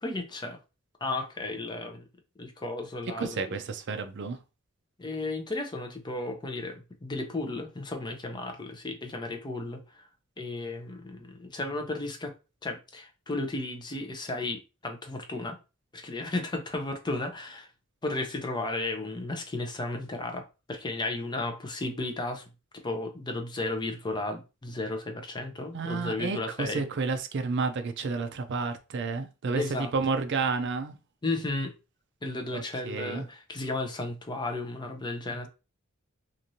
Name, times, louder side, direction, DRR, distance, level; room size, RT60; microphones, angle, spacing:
voice 1, 0.0-0.6 1.0-2.0 2.4-3.5 5.0-10.0 10.4-12.3 12.6-15.6 15.9-17.7 18.0-20.4 20.7-22.4 22.8-26.8 29.5-29.9 31.2-31.7 32.2-35.5, left 2 dB, 20° left, 0.5 m, -34 dB
voice 2, 3.2-4.4 25.7-31.0 32.5-33.3, right 4 dB, 60° right, 0.5 m, -31 dB
3.0 x 2.5 x 2.6 m
head